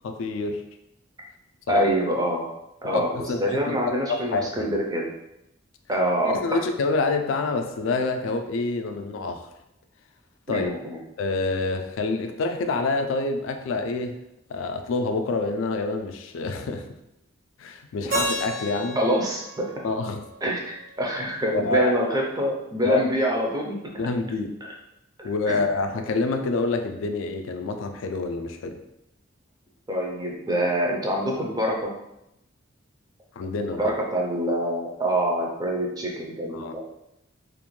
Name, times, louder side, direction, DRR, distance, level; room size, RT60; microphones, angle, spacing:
voice 1, 0.0-0.6 1.7-1.9 2.9-4.7 6.2-9.5 10.5-10.7 11.2-14.2 14.5-16.8 17.6-19.0 19.8-20.3 21.5-21.9 22.8-23.0 24.0-24.5 25.2-28.8 33.4-33.8 36.5-36.7, left 3 dB, 80° left, 6 dB, 0.3 m, -27 dB
voice 2, 1.7-2.5 2.8-5.1 5.9-6.6 10.5-11.0 19.0-19.4 20.4-23.8 25.2-25.6 29.9-31.9 33.8-36.8, equal, 20° right, -1 dB, 0.4 m, -25 dB
Keyboard (musical), 18.1-21.1, right 1 dB, 70° right, 1.2 m, -32 dB
2.5 x 2.1 x 3.0 m, 0.85 s
head